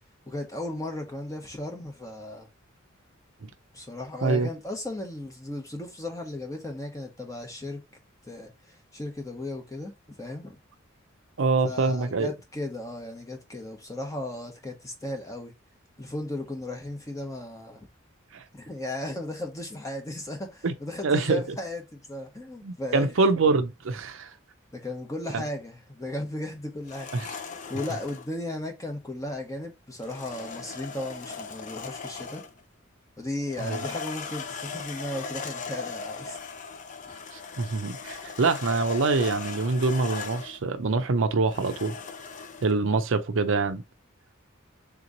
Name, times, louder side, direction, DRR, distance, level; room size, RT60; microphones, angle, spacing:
voice 1, 0.3-2.5 3.7-7.8 8.2-10.6 11.6-15.5 16.0-17.9 18.5-23.1 24.7-27.4 27.7-32.4 33.2-36.4, left 1 dB, 15° left, 0.9 m, -36 dB
voice 2, 11.4-12.3 18.3-18.4 20.6-20.7 21.0-21.4 22.6-24.3 25.3-25.4 33.6-33.8 37.6-41.9 42.6-43.8, right 3 dB, 65° right, 0.5 m, -25 dB
sound 1, 26.8-28.3 30.0-32.6 33.4-40.6 41.5-42.7, left 5 dB, 35° left, 0.5 m, -38 dB
3.6 x 3.0 x 3.8 m
head